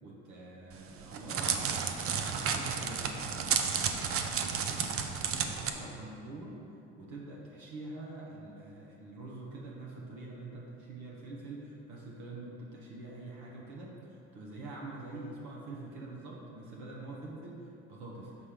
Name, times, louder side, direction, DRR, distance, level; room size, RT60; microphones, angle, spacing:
voice 1, 0.0-4.9 5.3-6.6 7.0-18.3, right 2 dB, 70° right, -3 dB, 1.1 m, -45 dB
Crackle, 0.7-5.7, right 7 dB, 50° right, 0.6 m, -32 dB
6.5 x 3.4 x 5.7 m, 2.7 s
hypercardioid pair, 70°, 30 cm